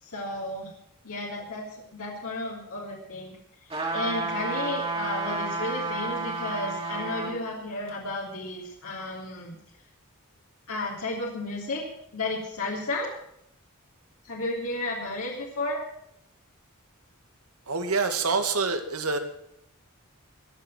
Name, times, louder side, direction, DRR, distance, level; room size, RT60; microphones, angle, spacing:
voice 1, 0.0-0.7 1.0-3.4 3.9-9.6 10.7-11.9 12.1-13.1 14.2-15.8, left 2 dB, 75° left, -4 dB, 3.4 m, -33 dB
sound 1, 3.7-7.4 7.9-8.0, right 3 dB, 25° right, 2.8 m, -31 dB
voice 2, 17.7-19.2, right 4 dB, 85° right, 7 dB, 2.0 m, -26 dB
21.5 x 7.5 x 6.2 m, 0.75 s
head